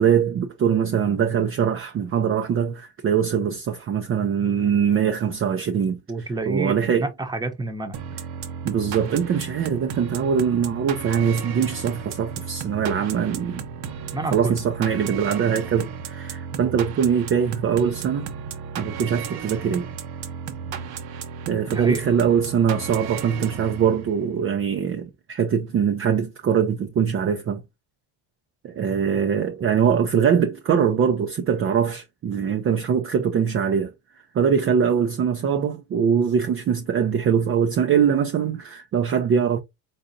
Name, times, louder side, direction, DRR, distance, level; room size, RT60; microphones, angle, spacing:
voice 1, 0.0-6.0 6.5-7.1 8.6-13.6 14.3-18.3 18.8-19.9 21.5-27.6 28.6-33.9 34.3-39.6, right 7 dB, 35° right, 0.5 m, -22 dB
voice 2, 6.1-8.1 14.1-14.6 16.5-16.7 21.7-22.0 29.0-29.2, right 2 dB, 10° right, 0.9 m, -29 dB
sound 1, 7.9-24.2, right 7 dB, 65° right, 0.9 m, -34 dB
3.9 x 3.8 x 2.6 m
cardioid pair, 110°, 40 cm